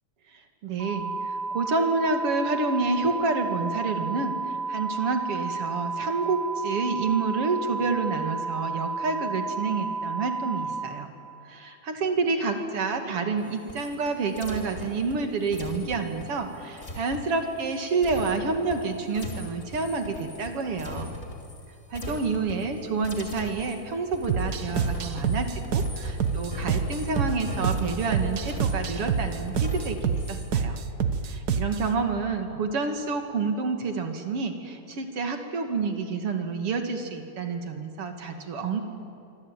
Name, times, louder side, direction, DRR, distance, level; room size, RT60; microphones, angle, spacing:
voice 1, 0.6-11.1 11.5-21.1 21.9-30.8 31.2-38.8, right 4 dB, 50° right, 5 dB, 3.0 m, -29 dB
sound 1, 0.8-10.8, right 4 dB, 30° right, 8.1 m, -32 dB
sound 2, 13.4-21.7 21.9-22.8 23.0-30.6, left 1 dB, 20° left, 3.0 m, -39 dB
sound 3, 24.3-31.9, right 6 dB, 75° right, 0.8 m, -27 dB
25.0 x 25.0 x 9.1 m, 2.7 s
omnidirectional pair, 3.6 m